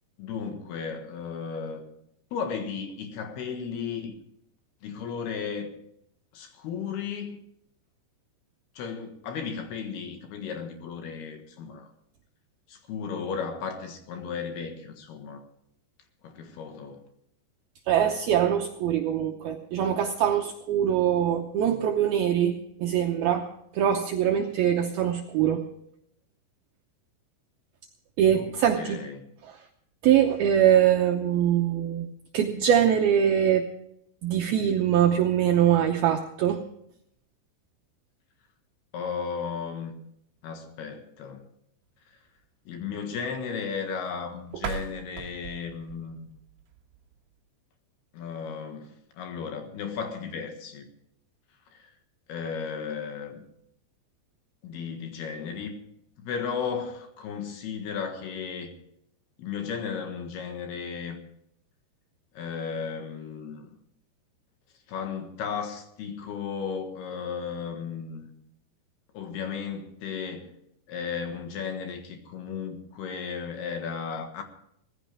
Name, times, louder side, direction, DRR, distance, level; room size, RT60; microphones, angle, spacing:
voice 1, 0.2-1.8 2.3-4.1 4.8-5.7 6.3-7.4 8.8-11.9 12.7-15.4 16.2-17.0 28.3-29.3 38.9-40.0 40.4-41.4 42.1-42.2 42.7-46.3 48.1-50.9 51.7-51.9 52.3-53.4 54.6-55.8 56.2-58.7 59.4-61.2 62.3-63.8 64.9-68.3 69.1-70.5 70.9-74.4, left 6 dB, 65° left, 3.2 m, -35 dB
voice 2, 17.9-23.5 23.7-25.6 28.2-29.0 30.0-32.1 32.3-33.7 34.2-36.6, right 9 dB, 80° right, 2.2 m, -23 dB
sound 1, 44.5-47.4, right 8 dB, 65° right, 2.5 m, -39 dB
19.0 x 15.5 x 3.5 m
omnidirectional pair, 5.5 m